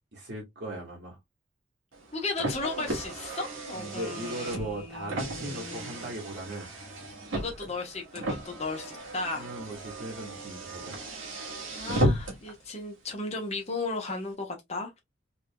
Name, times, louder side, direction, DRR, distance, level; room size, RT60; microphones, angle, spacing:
voice 1, 0.1-1.2 3.8-6.7 9.3-11.0, right 1 dB, 55° right, 1.6 m, -38 dB
Car, 1.9-12.5, right 1 dB, 75° right, 1.5 m, -34 dB
voice 2, 2.1-6.1 7.3-9.5 11.8-15.0, left 3 dB, 30° left, 1.0 m, -35 dB
3.7 x 3.5 x 2.2 m
head